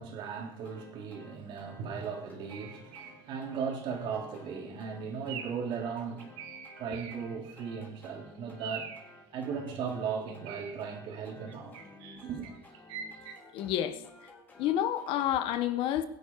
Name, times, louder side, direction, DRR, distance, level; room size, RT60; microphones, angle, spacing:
voice 1, 0.0-6.5 6.8-8.9 9.3-11.8 12.2-12.5, right 6 dB, 55° right, 3.6 m, -37 dB
sound 1, 0.6-15.4, left 2 dB, 15° left, 3.9 m, -54 dB
sound 2, 2.5-3.2 3.5-3.8 4.3-4.5 5.3-5.7 6.0-7.8 8.0-8.1 8.6-9.1 10.0-10.8 11.5-13.3, right 8 dB, 70° right, 2.2 m, -44 dB
voice 2, 13.5-14.0 14.6-16.0, left 11 dB, 60° left, 1.2 m, -29 dB
22.0 x 10.5 x 4.8 m
cardioid pair, 165°, 10 cm